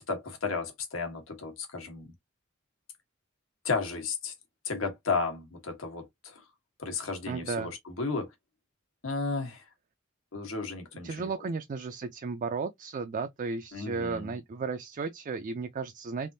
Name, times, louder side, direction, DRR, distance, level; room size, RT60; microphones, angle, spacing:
voice 1, 0.1-2.1 3.6-4.3 4.6-6.4 6.8-8.3 9.0-9.6 10.3-11.3 13.7-14.3, left 4 dB, 80° left, 1.3 m, -33 dB
voice 2, 7.3-7.7 11.0-16.3, right 4 dB, 40° right, 0.4 m, -34 dB
3.4 x 2.5 x 2.6 m
head